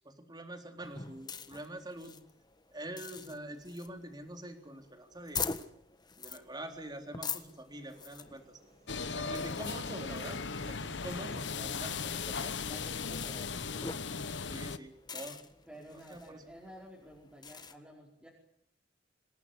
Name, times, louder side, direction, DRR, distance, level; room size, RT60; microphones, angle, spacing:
voice 1, 0.0-2.2 2.7-5.5 6.2-8.6 9.1-12.6 14.5-15.4 15.7-16.4, right 1 dB, 20° right, 4 dB, 3.8 m, -45 dB
sound 1, 0.8-17.7, left 5 dB, 20° left, 1.4 m, -45 dB
Engine, 7.6-12.8, right 2 dB, 40° right, 4.8 m, -64 dB
sound 2, 8.9-14.8, left 5 dB, 65° left, 1.1 m, -37 dB
voice 2, 9.1-9.9 11.2-11.6 12.7-14.2 15.6-18.3, equal, 5° right, -4 dB, 4.9 m, -52 dB
26.5 x 18.5 x 10.0 m, 0.74 s
head